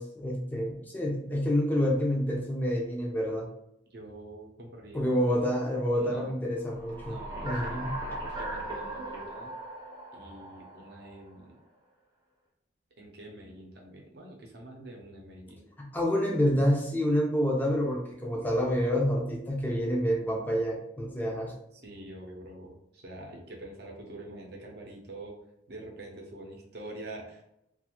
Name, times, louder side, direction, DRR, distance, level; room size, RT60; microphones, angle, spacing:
voice 1, 0.0-3.5 4.9-8.0 15.8-21.5, equal, 10° left, -1 dB, 0.5 m, -28 dB
voice 2, 3.9-5.4 5.9-6.5 7.0-7.9 8.4-9.5 10.1-11.6 13.0-15.6 21.8-25.4 25.7-27.4, right 1 dB, 60° right, 0 dB, 0.7 m, -46 dB
sound 1, 6.7-11.3, right 1 dB, 25° right, 0.7 m, -38 dB
2.5 x 2.4 x 2.9 m, 0.80 s
head